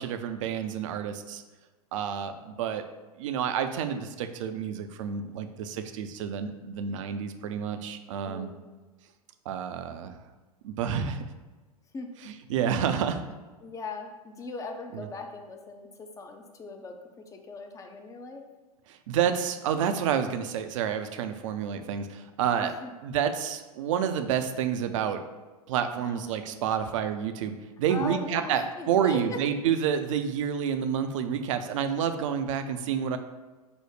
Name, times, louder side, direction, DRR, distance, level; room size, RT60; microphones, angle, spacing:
voice 1, 0.0-1.4 1.9-2.8 3.2-8.5 9.5-10.2 10.6-11.2 12.2-13.2 14.9-15.1 18.9-22.7 23.0-25.2 25.7-33.2, right 8 dB, 55° right, 8 dB, 0.5 m, -29 dB
voice 2, 8.2-8.6 11.9-12.1 13.6-17.0 17.3-18.4 22.6-22.9 25.9-26.7 27.9-29.4, left 3 dB, 15° left, 4 dB, 0.5 m, -39 dB
5.0 x 2.0 x 4.7 m, 1.2 s
figure-of-eight pair, 95°, 19 cm